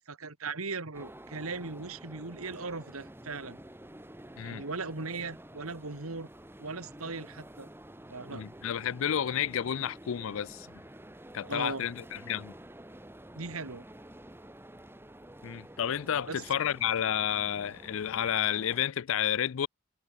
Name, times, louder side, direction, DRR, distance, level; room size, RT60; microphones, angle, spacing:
voice 1, 0.0-3.6 4.4-6.3 6.6-7.7 8.1-8.5 11.5-11.9 13.4-13.8 16.3-16.4, right 3 dB, 80° right, 2.1 m, -38 dB
sound 1, 0.9-18.8, right 1 dB, 10° right, 2.4 m, -50 dB
voice 2, 8.3-10.7 11.3-12.5 15.4-19.7, left 9 dB, 65° left, 0.4 m, -31 dB
head